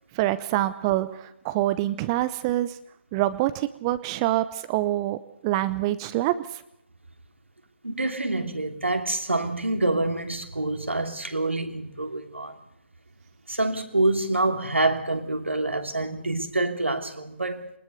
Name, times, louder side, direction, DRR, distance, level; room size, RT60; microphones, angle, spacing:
voice 1, 0.1-2.8 3.1-6.6, right 15 dB, 25° right, 0.9 m, -26 dB
voice 2, 7.8-12.6 13.5-17.7, right 2 dB, 85° right, 3.0 m, -26 dB
22.5 x 20.0 x 6.6 m
figure-of-eight pair, 140°, 6 cm